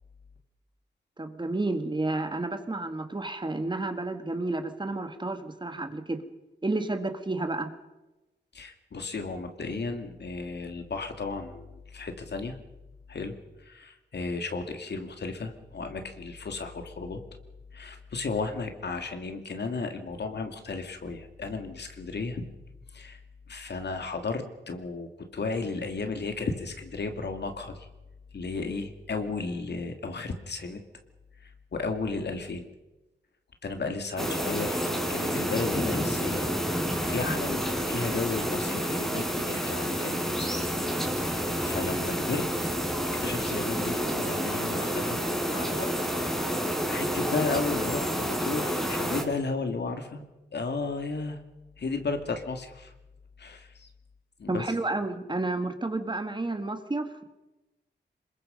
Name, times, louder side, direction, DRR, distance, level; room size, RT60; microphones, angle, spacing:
voice 1, 1.2-6.2 6.6-7.7 54.5-57.2, right 2 dB, 25° right, 7 dB, 1.9 m, -31 dB
voice 2, 8.5-12.6 13.1-17.2 17.7-22.5 22.9-23.2 23.5-27.9 28.3-30.8 31.4-32.7 33.6-36.5 37.0-40.7 41.2-42.5 43.1-45.2 45.5-46.5 46.9-50.2 50.5-51.4 51.8-52.9 53.4-53.9 54.4-54.6, left 4 dB, 70° left, 6 dB, 2.6 m, -34 dB
sound 1, 34.2-49.2, equal, ahead, 4.2 m, -29 dB
26.5 x 22.0 x 5.4 m, 1.1 s
wide cardioid pair, 110°, 19 cm